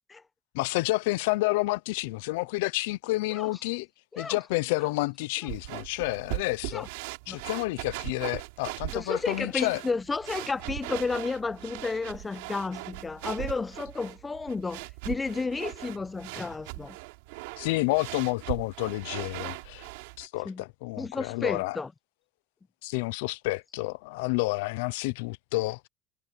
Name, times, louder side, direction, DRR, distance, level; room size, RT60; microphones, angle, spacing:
voice 1, 0.5-3.9 4.2-6.9 7.3-9.8 17.6-19.9 20.2-21.8 22.8-25.9, left 22 dB, 90° left, 0.7 m, -29 dB
sound 1, 5.5-20.3, right 25 dB, 90° right, 4.1 m, -39 dB
voice 2, 8.9-17.0 20.4-20.6 21.0-21.9, left 4 dB, 20° left, 1.0 m, -32 dB
supercardioid pair, 85°, 0 cm